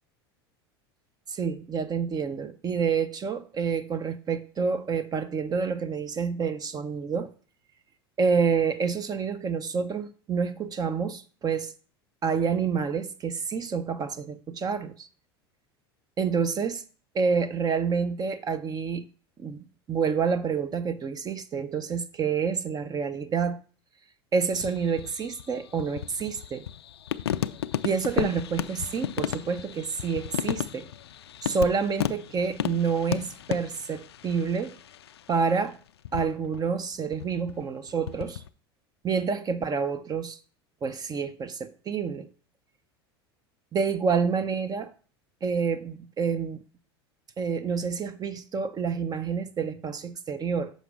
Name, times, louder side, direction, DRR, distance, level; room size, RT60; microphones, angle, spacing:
voice 1, 1.3-7.3 8.2-11.7 12.2-15.1 16.2-16.8 17.1-19.1 19.4-23.6 24.3-26.7 27.8-30.9 31.4-34.8 35.3-35.8 36.1-38.4 39.0-40.4 40.8-42.3 43.7-44.9 45.4-46.6 47.4-50.7, right 5 dB, 30° right, 0.7 m, -28 dB
sound 1, 24.5-35.4 36.1-36.7 37.0-38.5, left 10 dB, 85° left, 0.4 m, -34 dB
6.6 x 5.1 x 5.0 m
hypercardioid pair, 85°, 13 cm